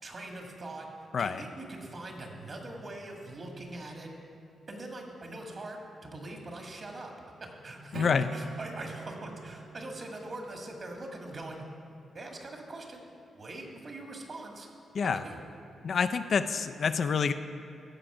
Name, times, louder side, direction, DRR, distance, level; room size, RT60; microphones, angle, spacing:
voice 1, 0.0-0.9 1.2-4.1 4.7-7.1 7.4-11.6 12.1-13.0 13.3-14.7 15.0-15.4, right 2 dB, 50° right, 1 dB, 1.8 m, -42 dB
voice 2, 7.9-8.3 14.9-15.2 15.8-17.3, left 6 dB, 60° left, 10 dB, 0.4 m, -27 dB
Acoustic guitar / Strum, 7.9-11.3, right 6 dB, 75° right, 0.6 m, -45 dB
14.5 x 5.1 x 4.9 m, 2.7 s
cardioid pair, 65°, 0 cm